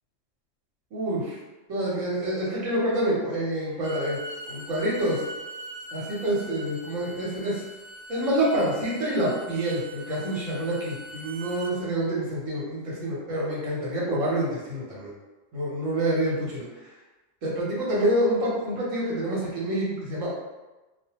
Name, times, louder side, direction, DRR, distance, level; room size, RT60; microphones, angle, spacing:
voice 1, 0.9-1.4 1.7-4.2 4.5-5.2 5.9-7.6 8.1-15.1 15.5-16.7 17.4-20.4, right 1 dB, 75° right, -5 dB, 1.2 m, -27 dB
Bowed string instrument, 3.7-11.7, equal, 55° right, 1.2 m, -42 dB
2.6 x 2.0 x 2.8 m, 1.1 s
omnidirectional pair, 1.3 m